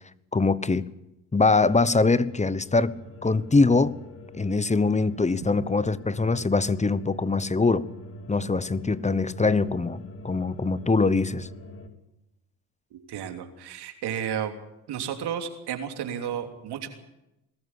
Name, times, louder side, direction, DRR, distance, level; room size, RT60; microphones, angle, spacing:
voice 1, 0.3-0.9 1.3-2.9 3.2-4.0 4.3-7.9 8.3-11.5, left 3 dB, 15° left, 18 dB, 1.1 m, -23 dB
sound 1, 1.6-11.9, left 1 dB, 35° left, 3.2 m, -43 dB
voice 2, 12.9-14.6 14.9-16.9, right 9 dB, 75° right, 6 dB, 3.2 m, -32 dB
21.0 x 14.0 x 9.9 m, 0.92 s
supercardioid pair, 75°, 40 cm